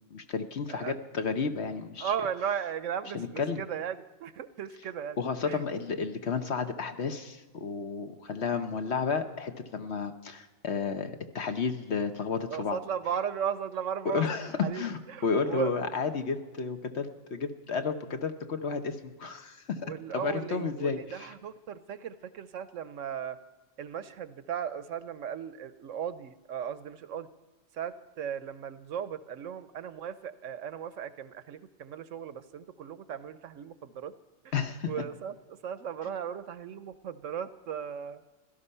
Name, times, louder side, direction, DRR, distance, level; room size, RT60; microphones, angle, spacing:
voice 1, 0.0-2.1 3.1-3.6 5.2-12.8 14.0-19.8 20.1-21.3 34.5-34.9, left 5 dB, 55° left, 7 dB, 1.2 m, -32 dB
voice 2, 2.0-5.2 5.4-5.6 12.5-15.9 19.8-23.4 23.8-27.3 27.7-34.1 34.4-34.5 34.8-38.2, right 8 dB, 70° right, 13 dB, 1.0 m, -36 dB
16.5 x 13.0 x 5.5 m, 1.2 s
omnidirectional pair, 1.4 m